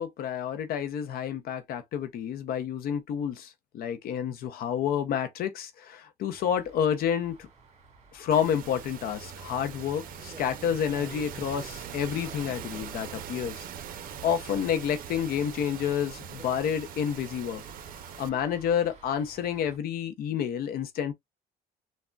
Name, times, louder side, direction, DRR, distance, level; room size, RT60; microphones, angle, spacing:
voice 1, 0.0-7.5 8.1-13.7 14.2-17.6 18.2-21.1, left 8 dB, 60° left, 0.5 m, -29 dB
sound 1, 6.3-19.8, right 3 dB, 40° right, 1.3 m, -51 dB
sound 2, 8.3-18.3, right 9 dB, 55° right, 0.5 m, -42 dB
3.6 x 2.1 x 2.2 m
cardioid pair, 110°, 17 cm